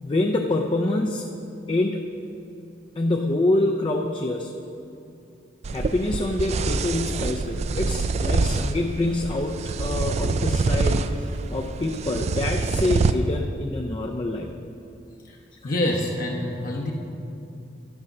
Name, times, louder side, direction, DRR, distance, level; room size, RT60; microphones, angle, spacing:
voice 1, 0.0-1.3 1.7-2.0 3.0-4.5 5.7-14.6 15.6-15.7, left 2 dB, 30° left, 2 dB, 0.5 m, -26 dB
sound 1, 5.6-13.1, right 4 dB, 35° right, 0.3 m, -25 dB
voice 2, 15.6-16.9, left 1 dB, 50° left, -1 dB, 0.9 m, -26 dB
10.5 x 6.4 x 5.9 m, 2.7 s
head